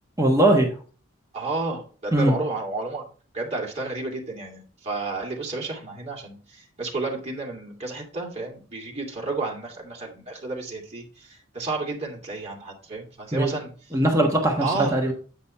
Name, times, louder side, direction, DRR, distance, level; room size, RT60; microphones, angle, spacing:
voice 1, 0.2-0.7 2.1-2.3 13.3-13.5 13.9-14.6 14.9-15.1, right 1 dB, 15° right, 1 dB, 1.3 m, -20 dB
voice 2, 1.3-3.0 3.3-13.7 14.6-15.0, right 3 dB, 30° right, -1 dB, 2.5 m, -31 dB
8.7 x 5.2 x 4.3 m, 0.38 s
head